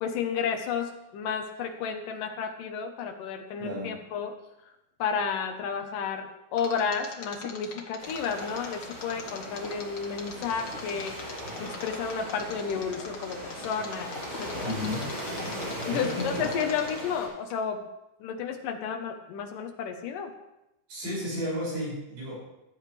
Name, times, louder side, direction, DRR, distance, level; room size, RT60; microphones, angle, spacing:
voice 1, 0.0-4.4 5.0-11.2 11.6-14.7 15.8-17.9 18.2-20.3, left 6 dB, 70° left, 4 dB, 2.3 m, -32 dB
voice 2, 3.6-4.0 14.6-15.1 15.8-16.5 20.9-22.4, equal, 65° right, -6 dB, 8.2 m, -33 dB
Mechanisms, 6.6-17.2 17.5-17.6, left 4 dB, 85° left, 1.0 m, -42 dB
Waves surf, 8.0-17.3, equal, 30° right, 6.1 m, -38 dB
16.0 x 12.5 x 3.3 m, 0.89 s
omnidirectional pair, 4.6 m